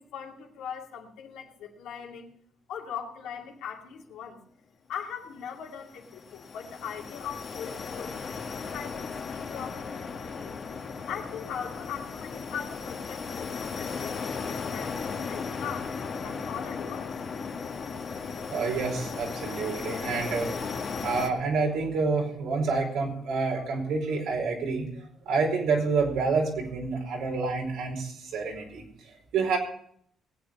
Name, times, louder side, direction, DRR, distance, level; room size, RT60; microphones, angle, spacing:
voice 1, 0.0-2.3 2.7-4.4 4.9-10.6 11.1-17.1, left 7 dB, 90° left, 1 dB, 2.4 m, -40 dB
sound 1, 5.6-21.3, left 5 dB, 50° left, 1.6 m, -36 dB
voice 2, 18.1-24.9 25.3-29.6, right 4 dB, 90° right, 1 dB, 4.6 m, -28 dB
19.0 x 8.7 x 5.3 m, 0.66 s
cardioid pair, 90°, 0 cm